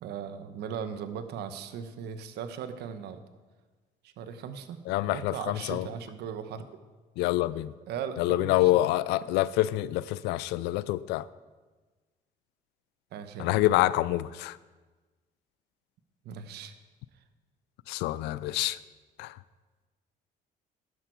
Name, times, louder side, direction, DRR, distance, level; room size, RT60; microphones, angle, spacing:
voice 1, 0.0-3.2 4.0-4.8 5.1-6.7 7.9-8.7 13.1-13.5 16.2-16.7, right 7 dB, 75° right, 1.1 m, -38 dB
voice 2, 4.9-5.9 7.2-7.7 8.2-11.3 13.4-14.6 17.9-18.8 19.2-19.4, left 16 dB, 90° left, 0.4 m, -26 dB
13.0 x 11.0 x 4.6 m
cardioid pair, 110°, 17 cm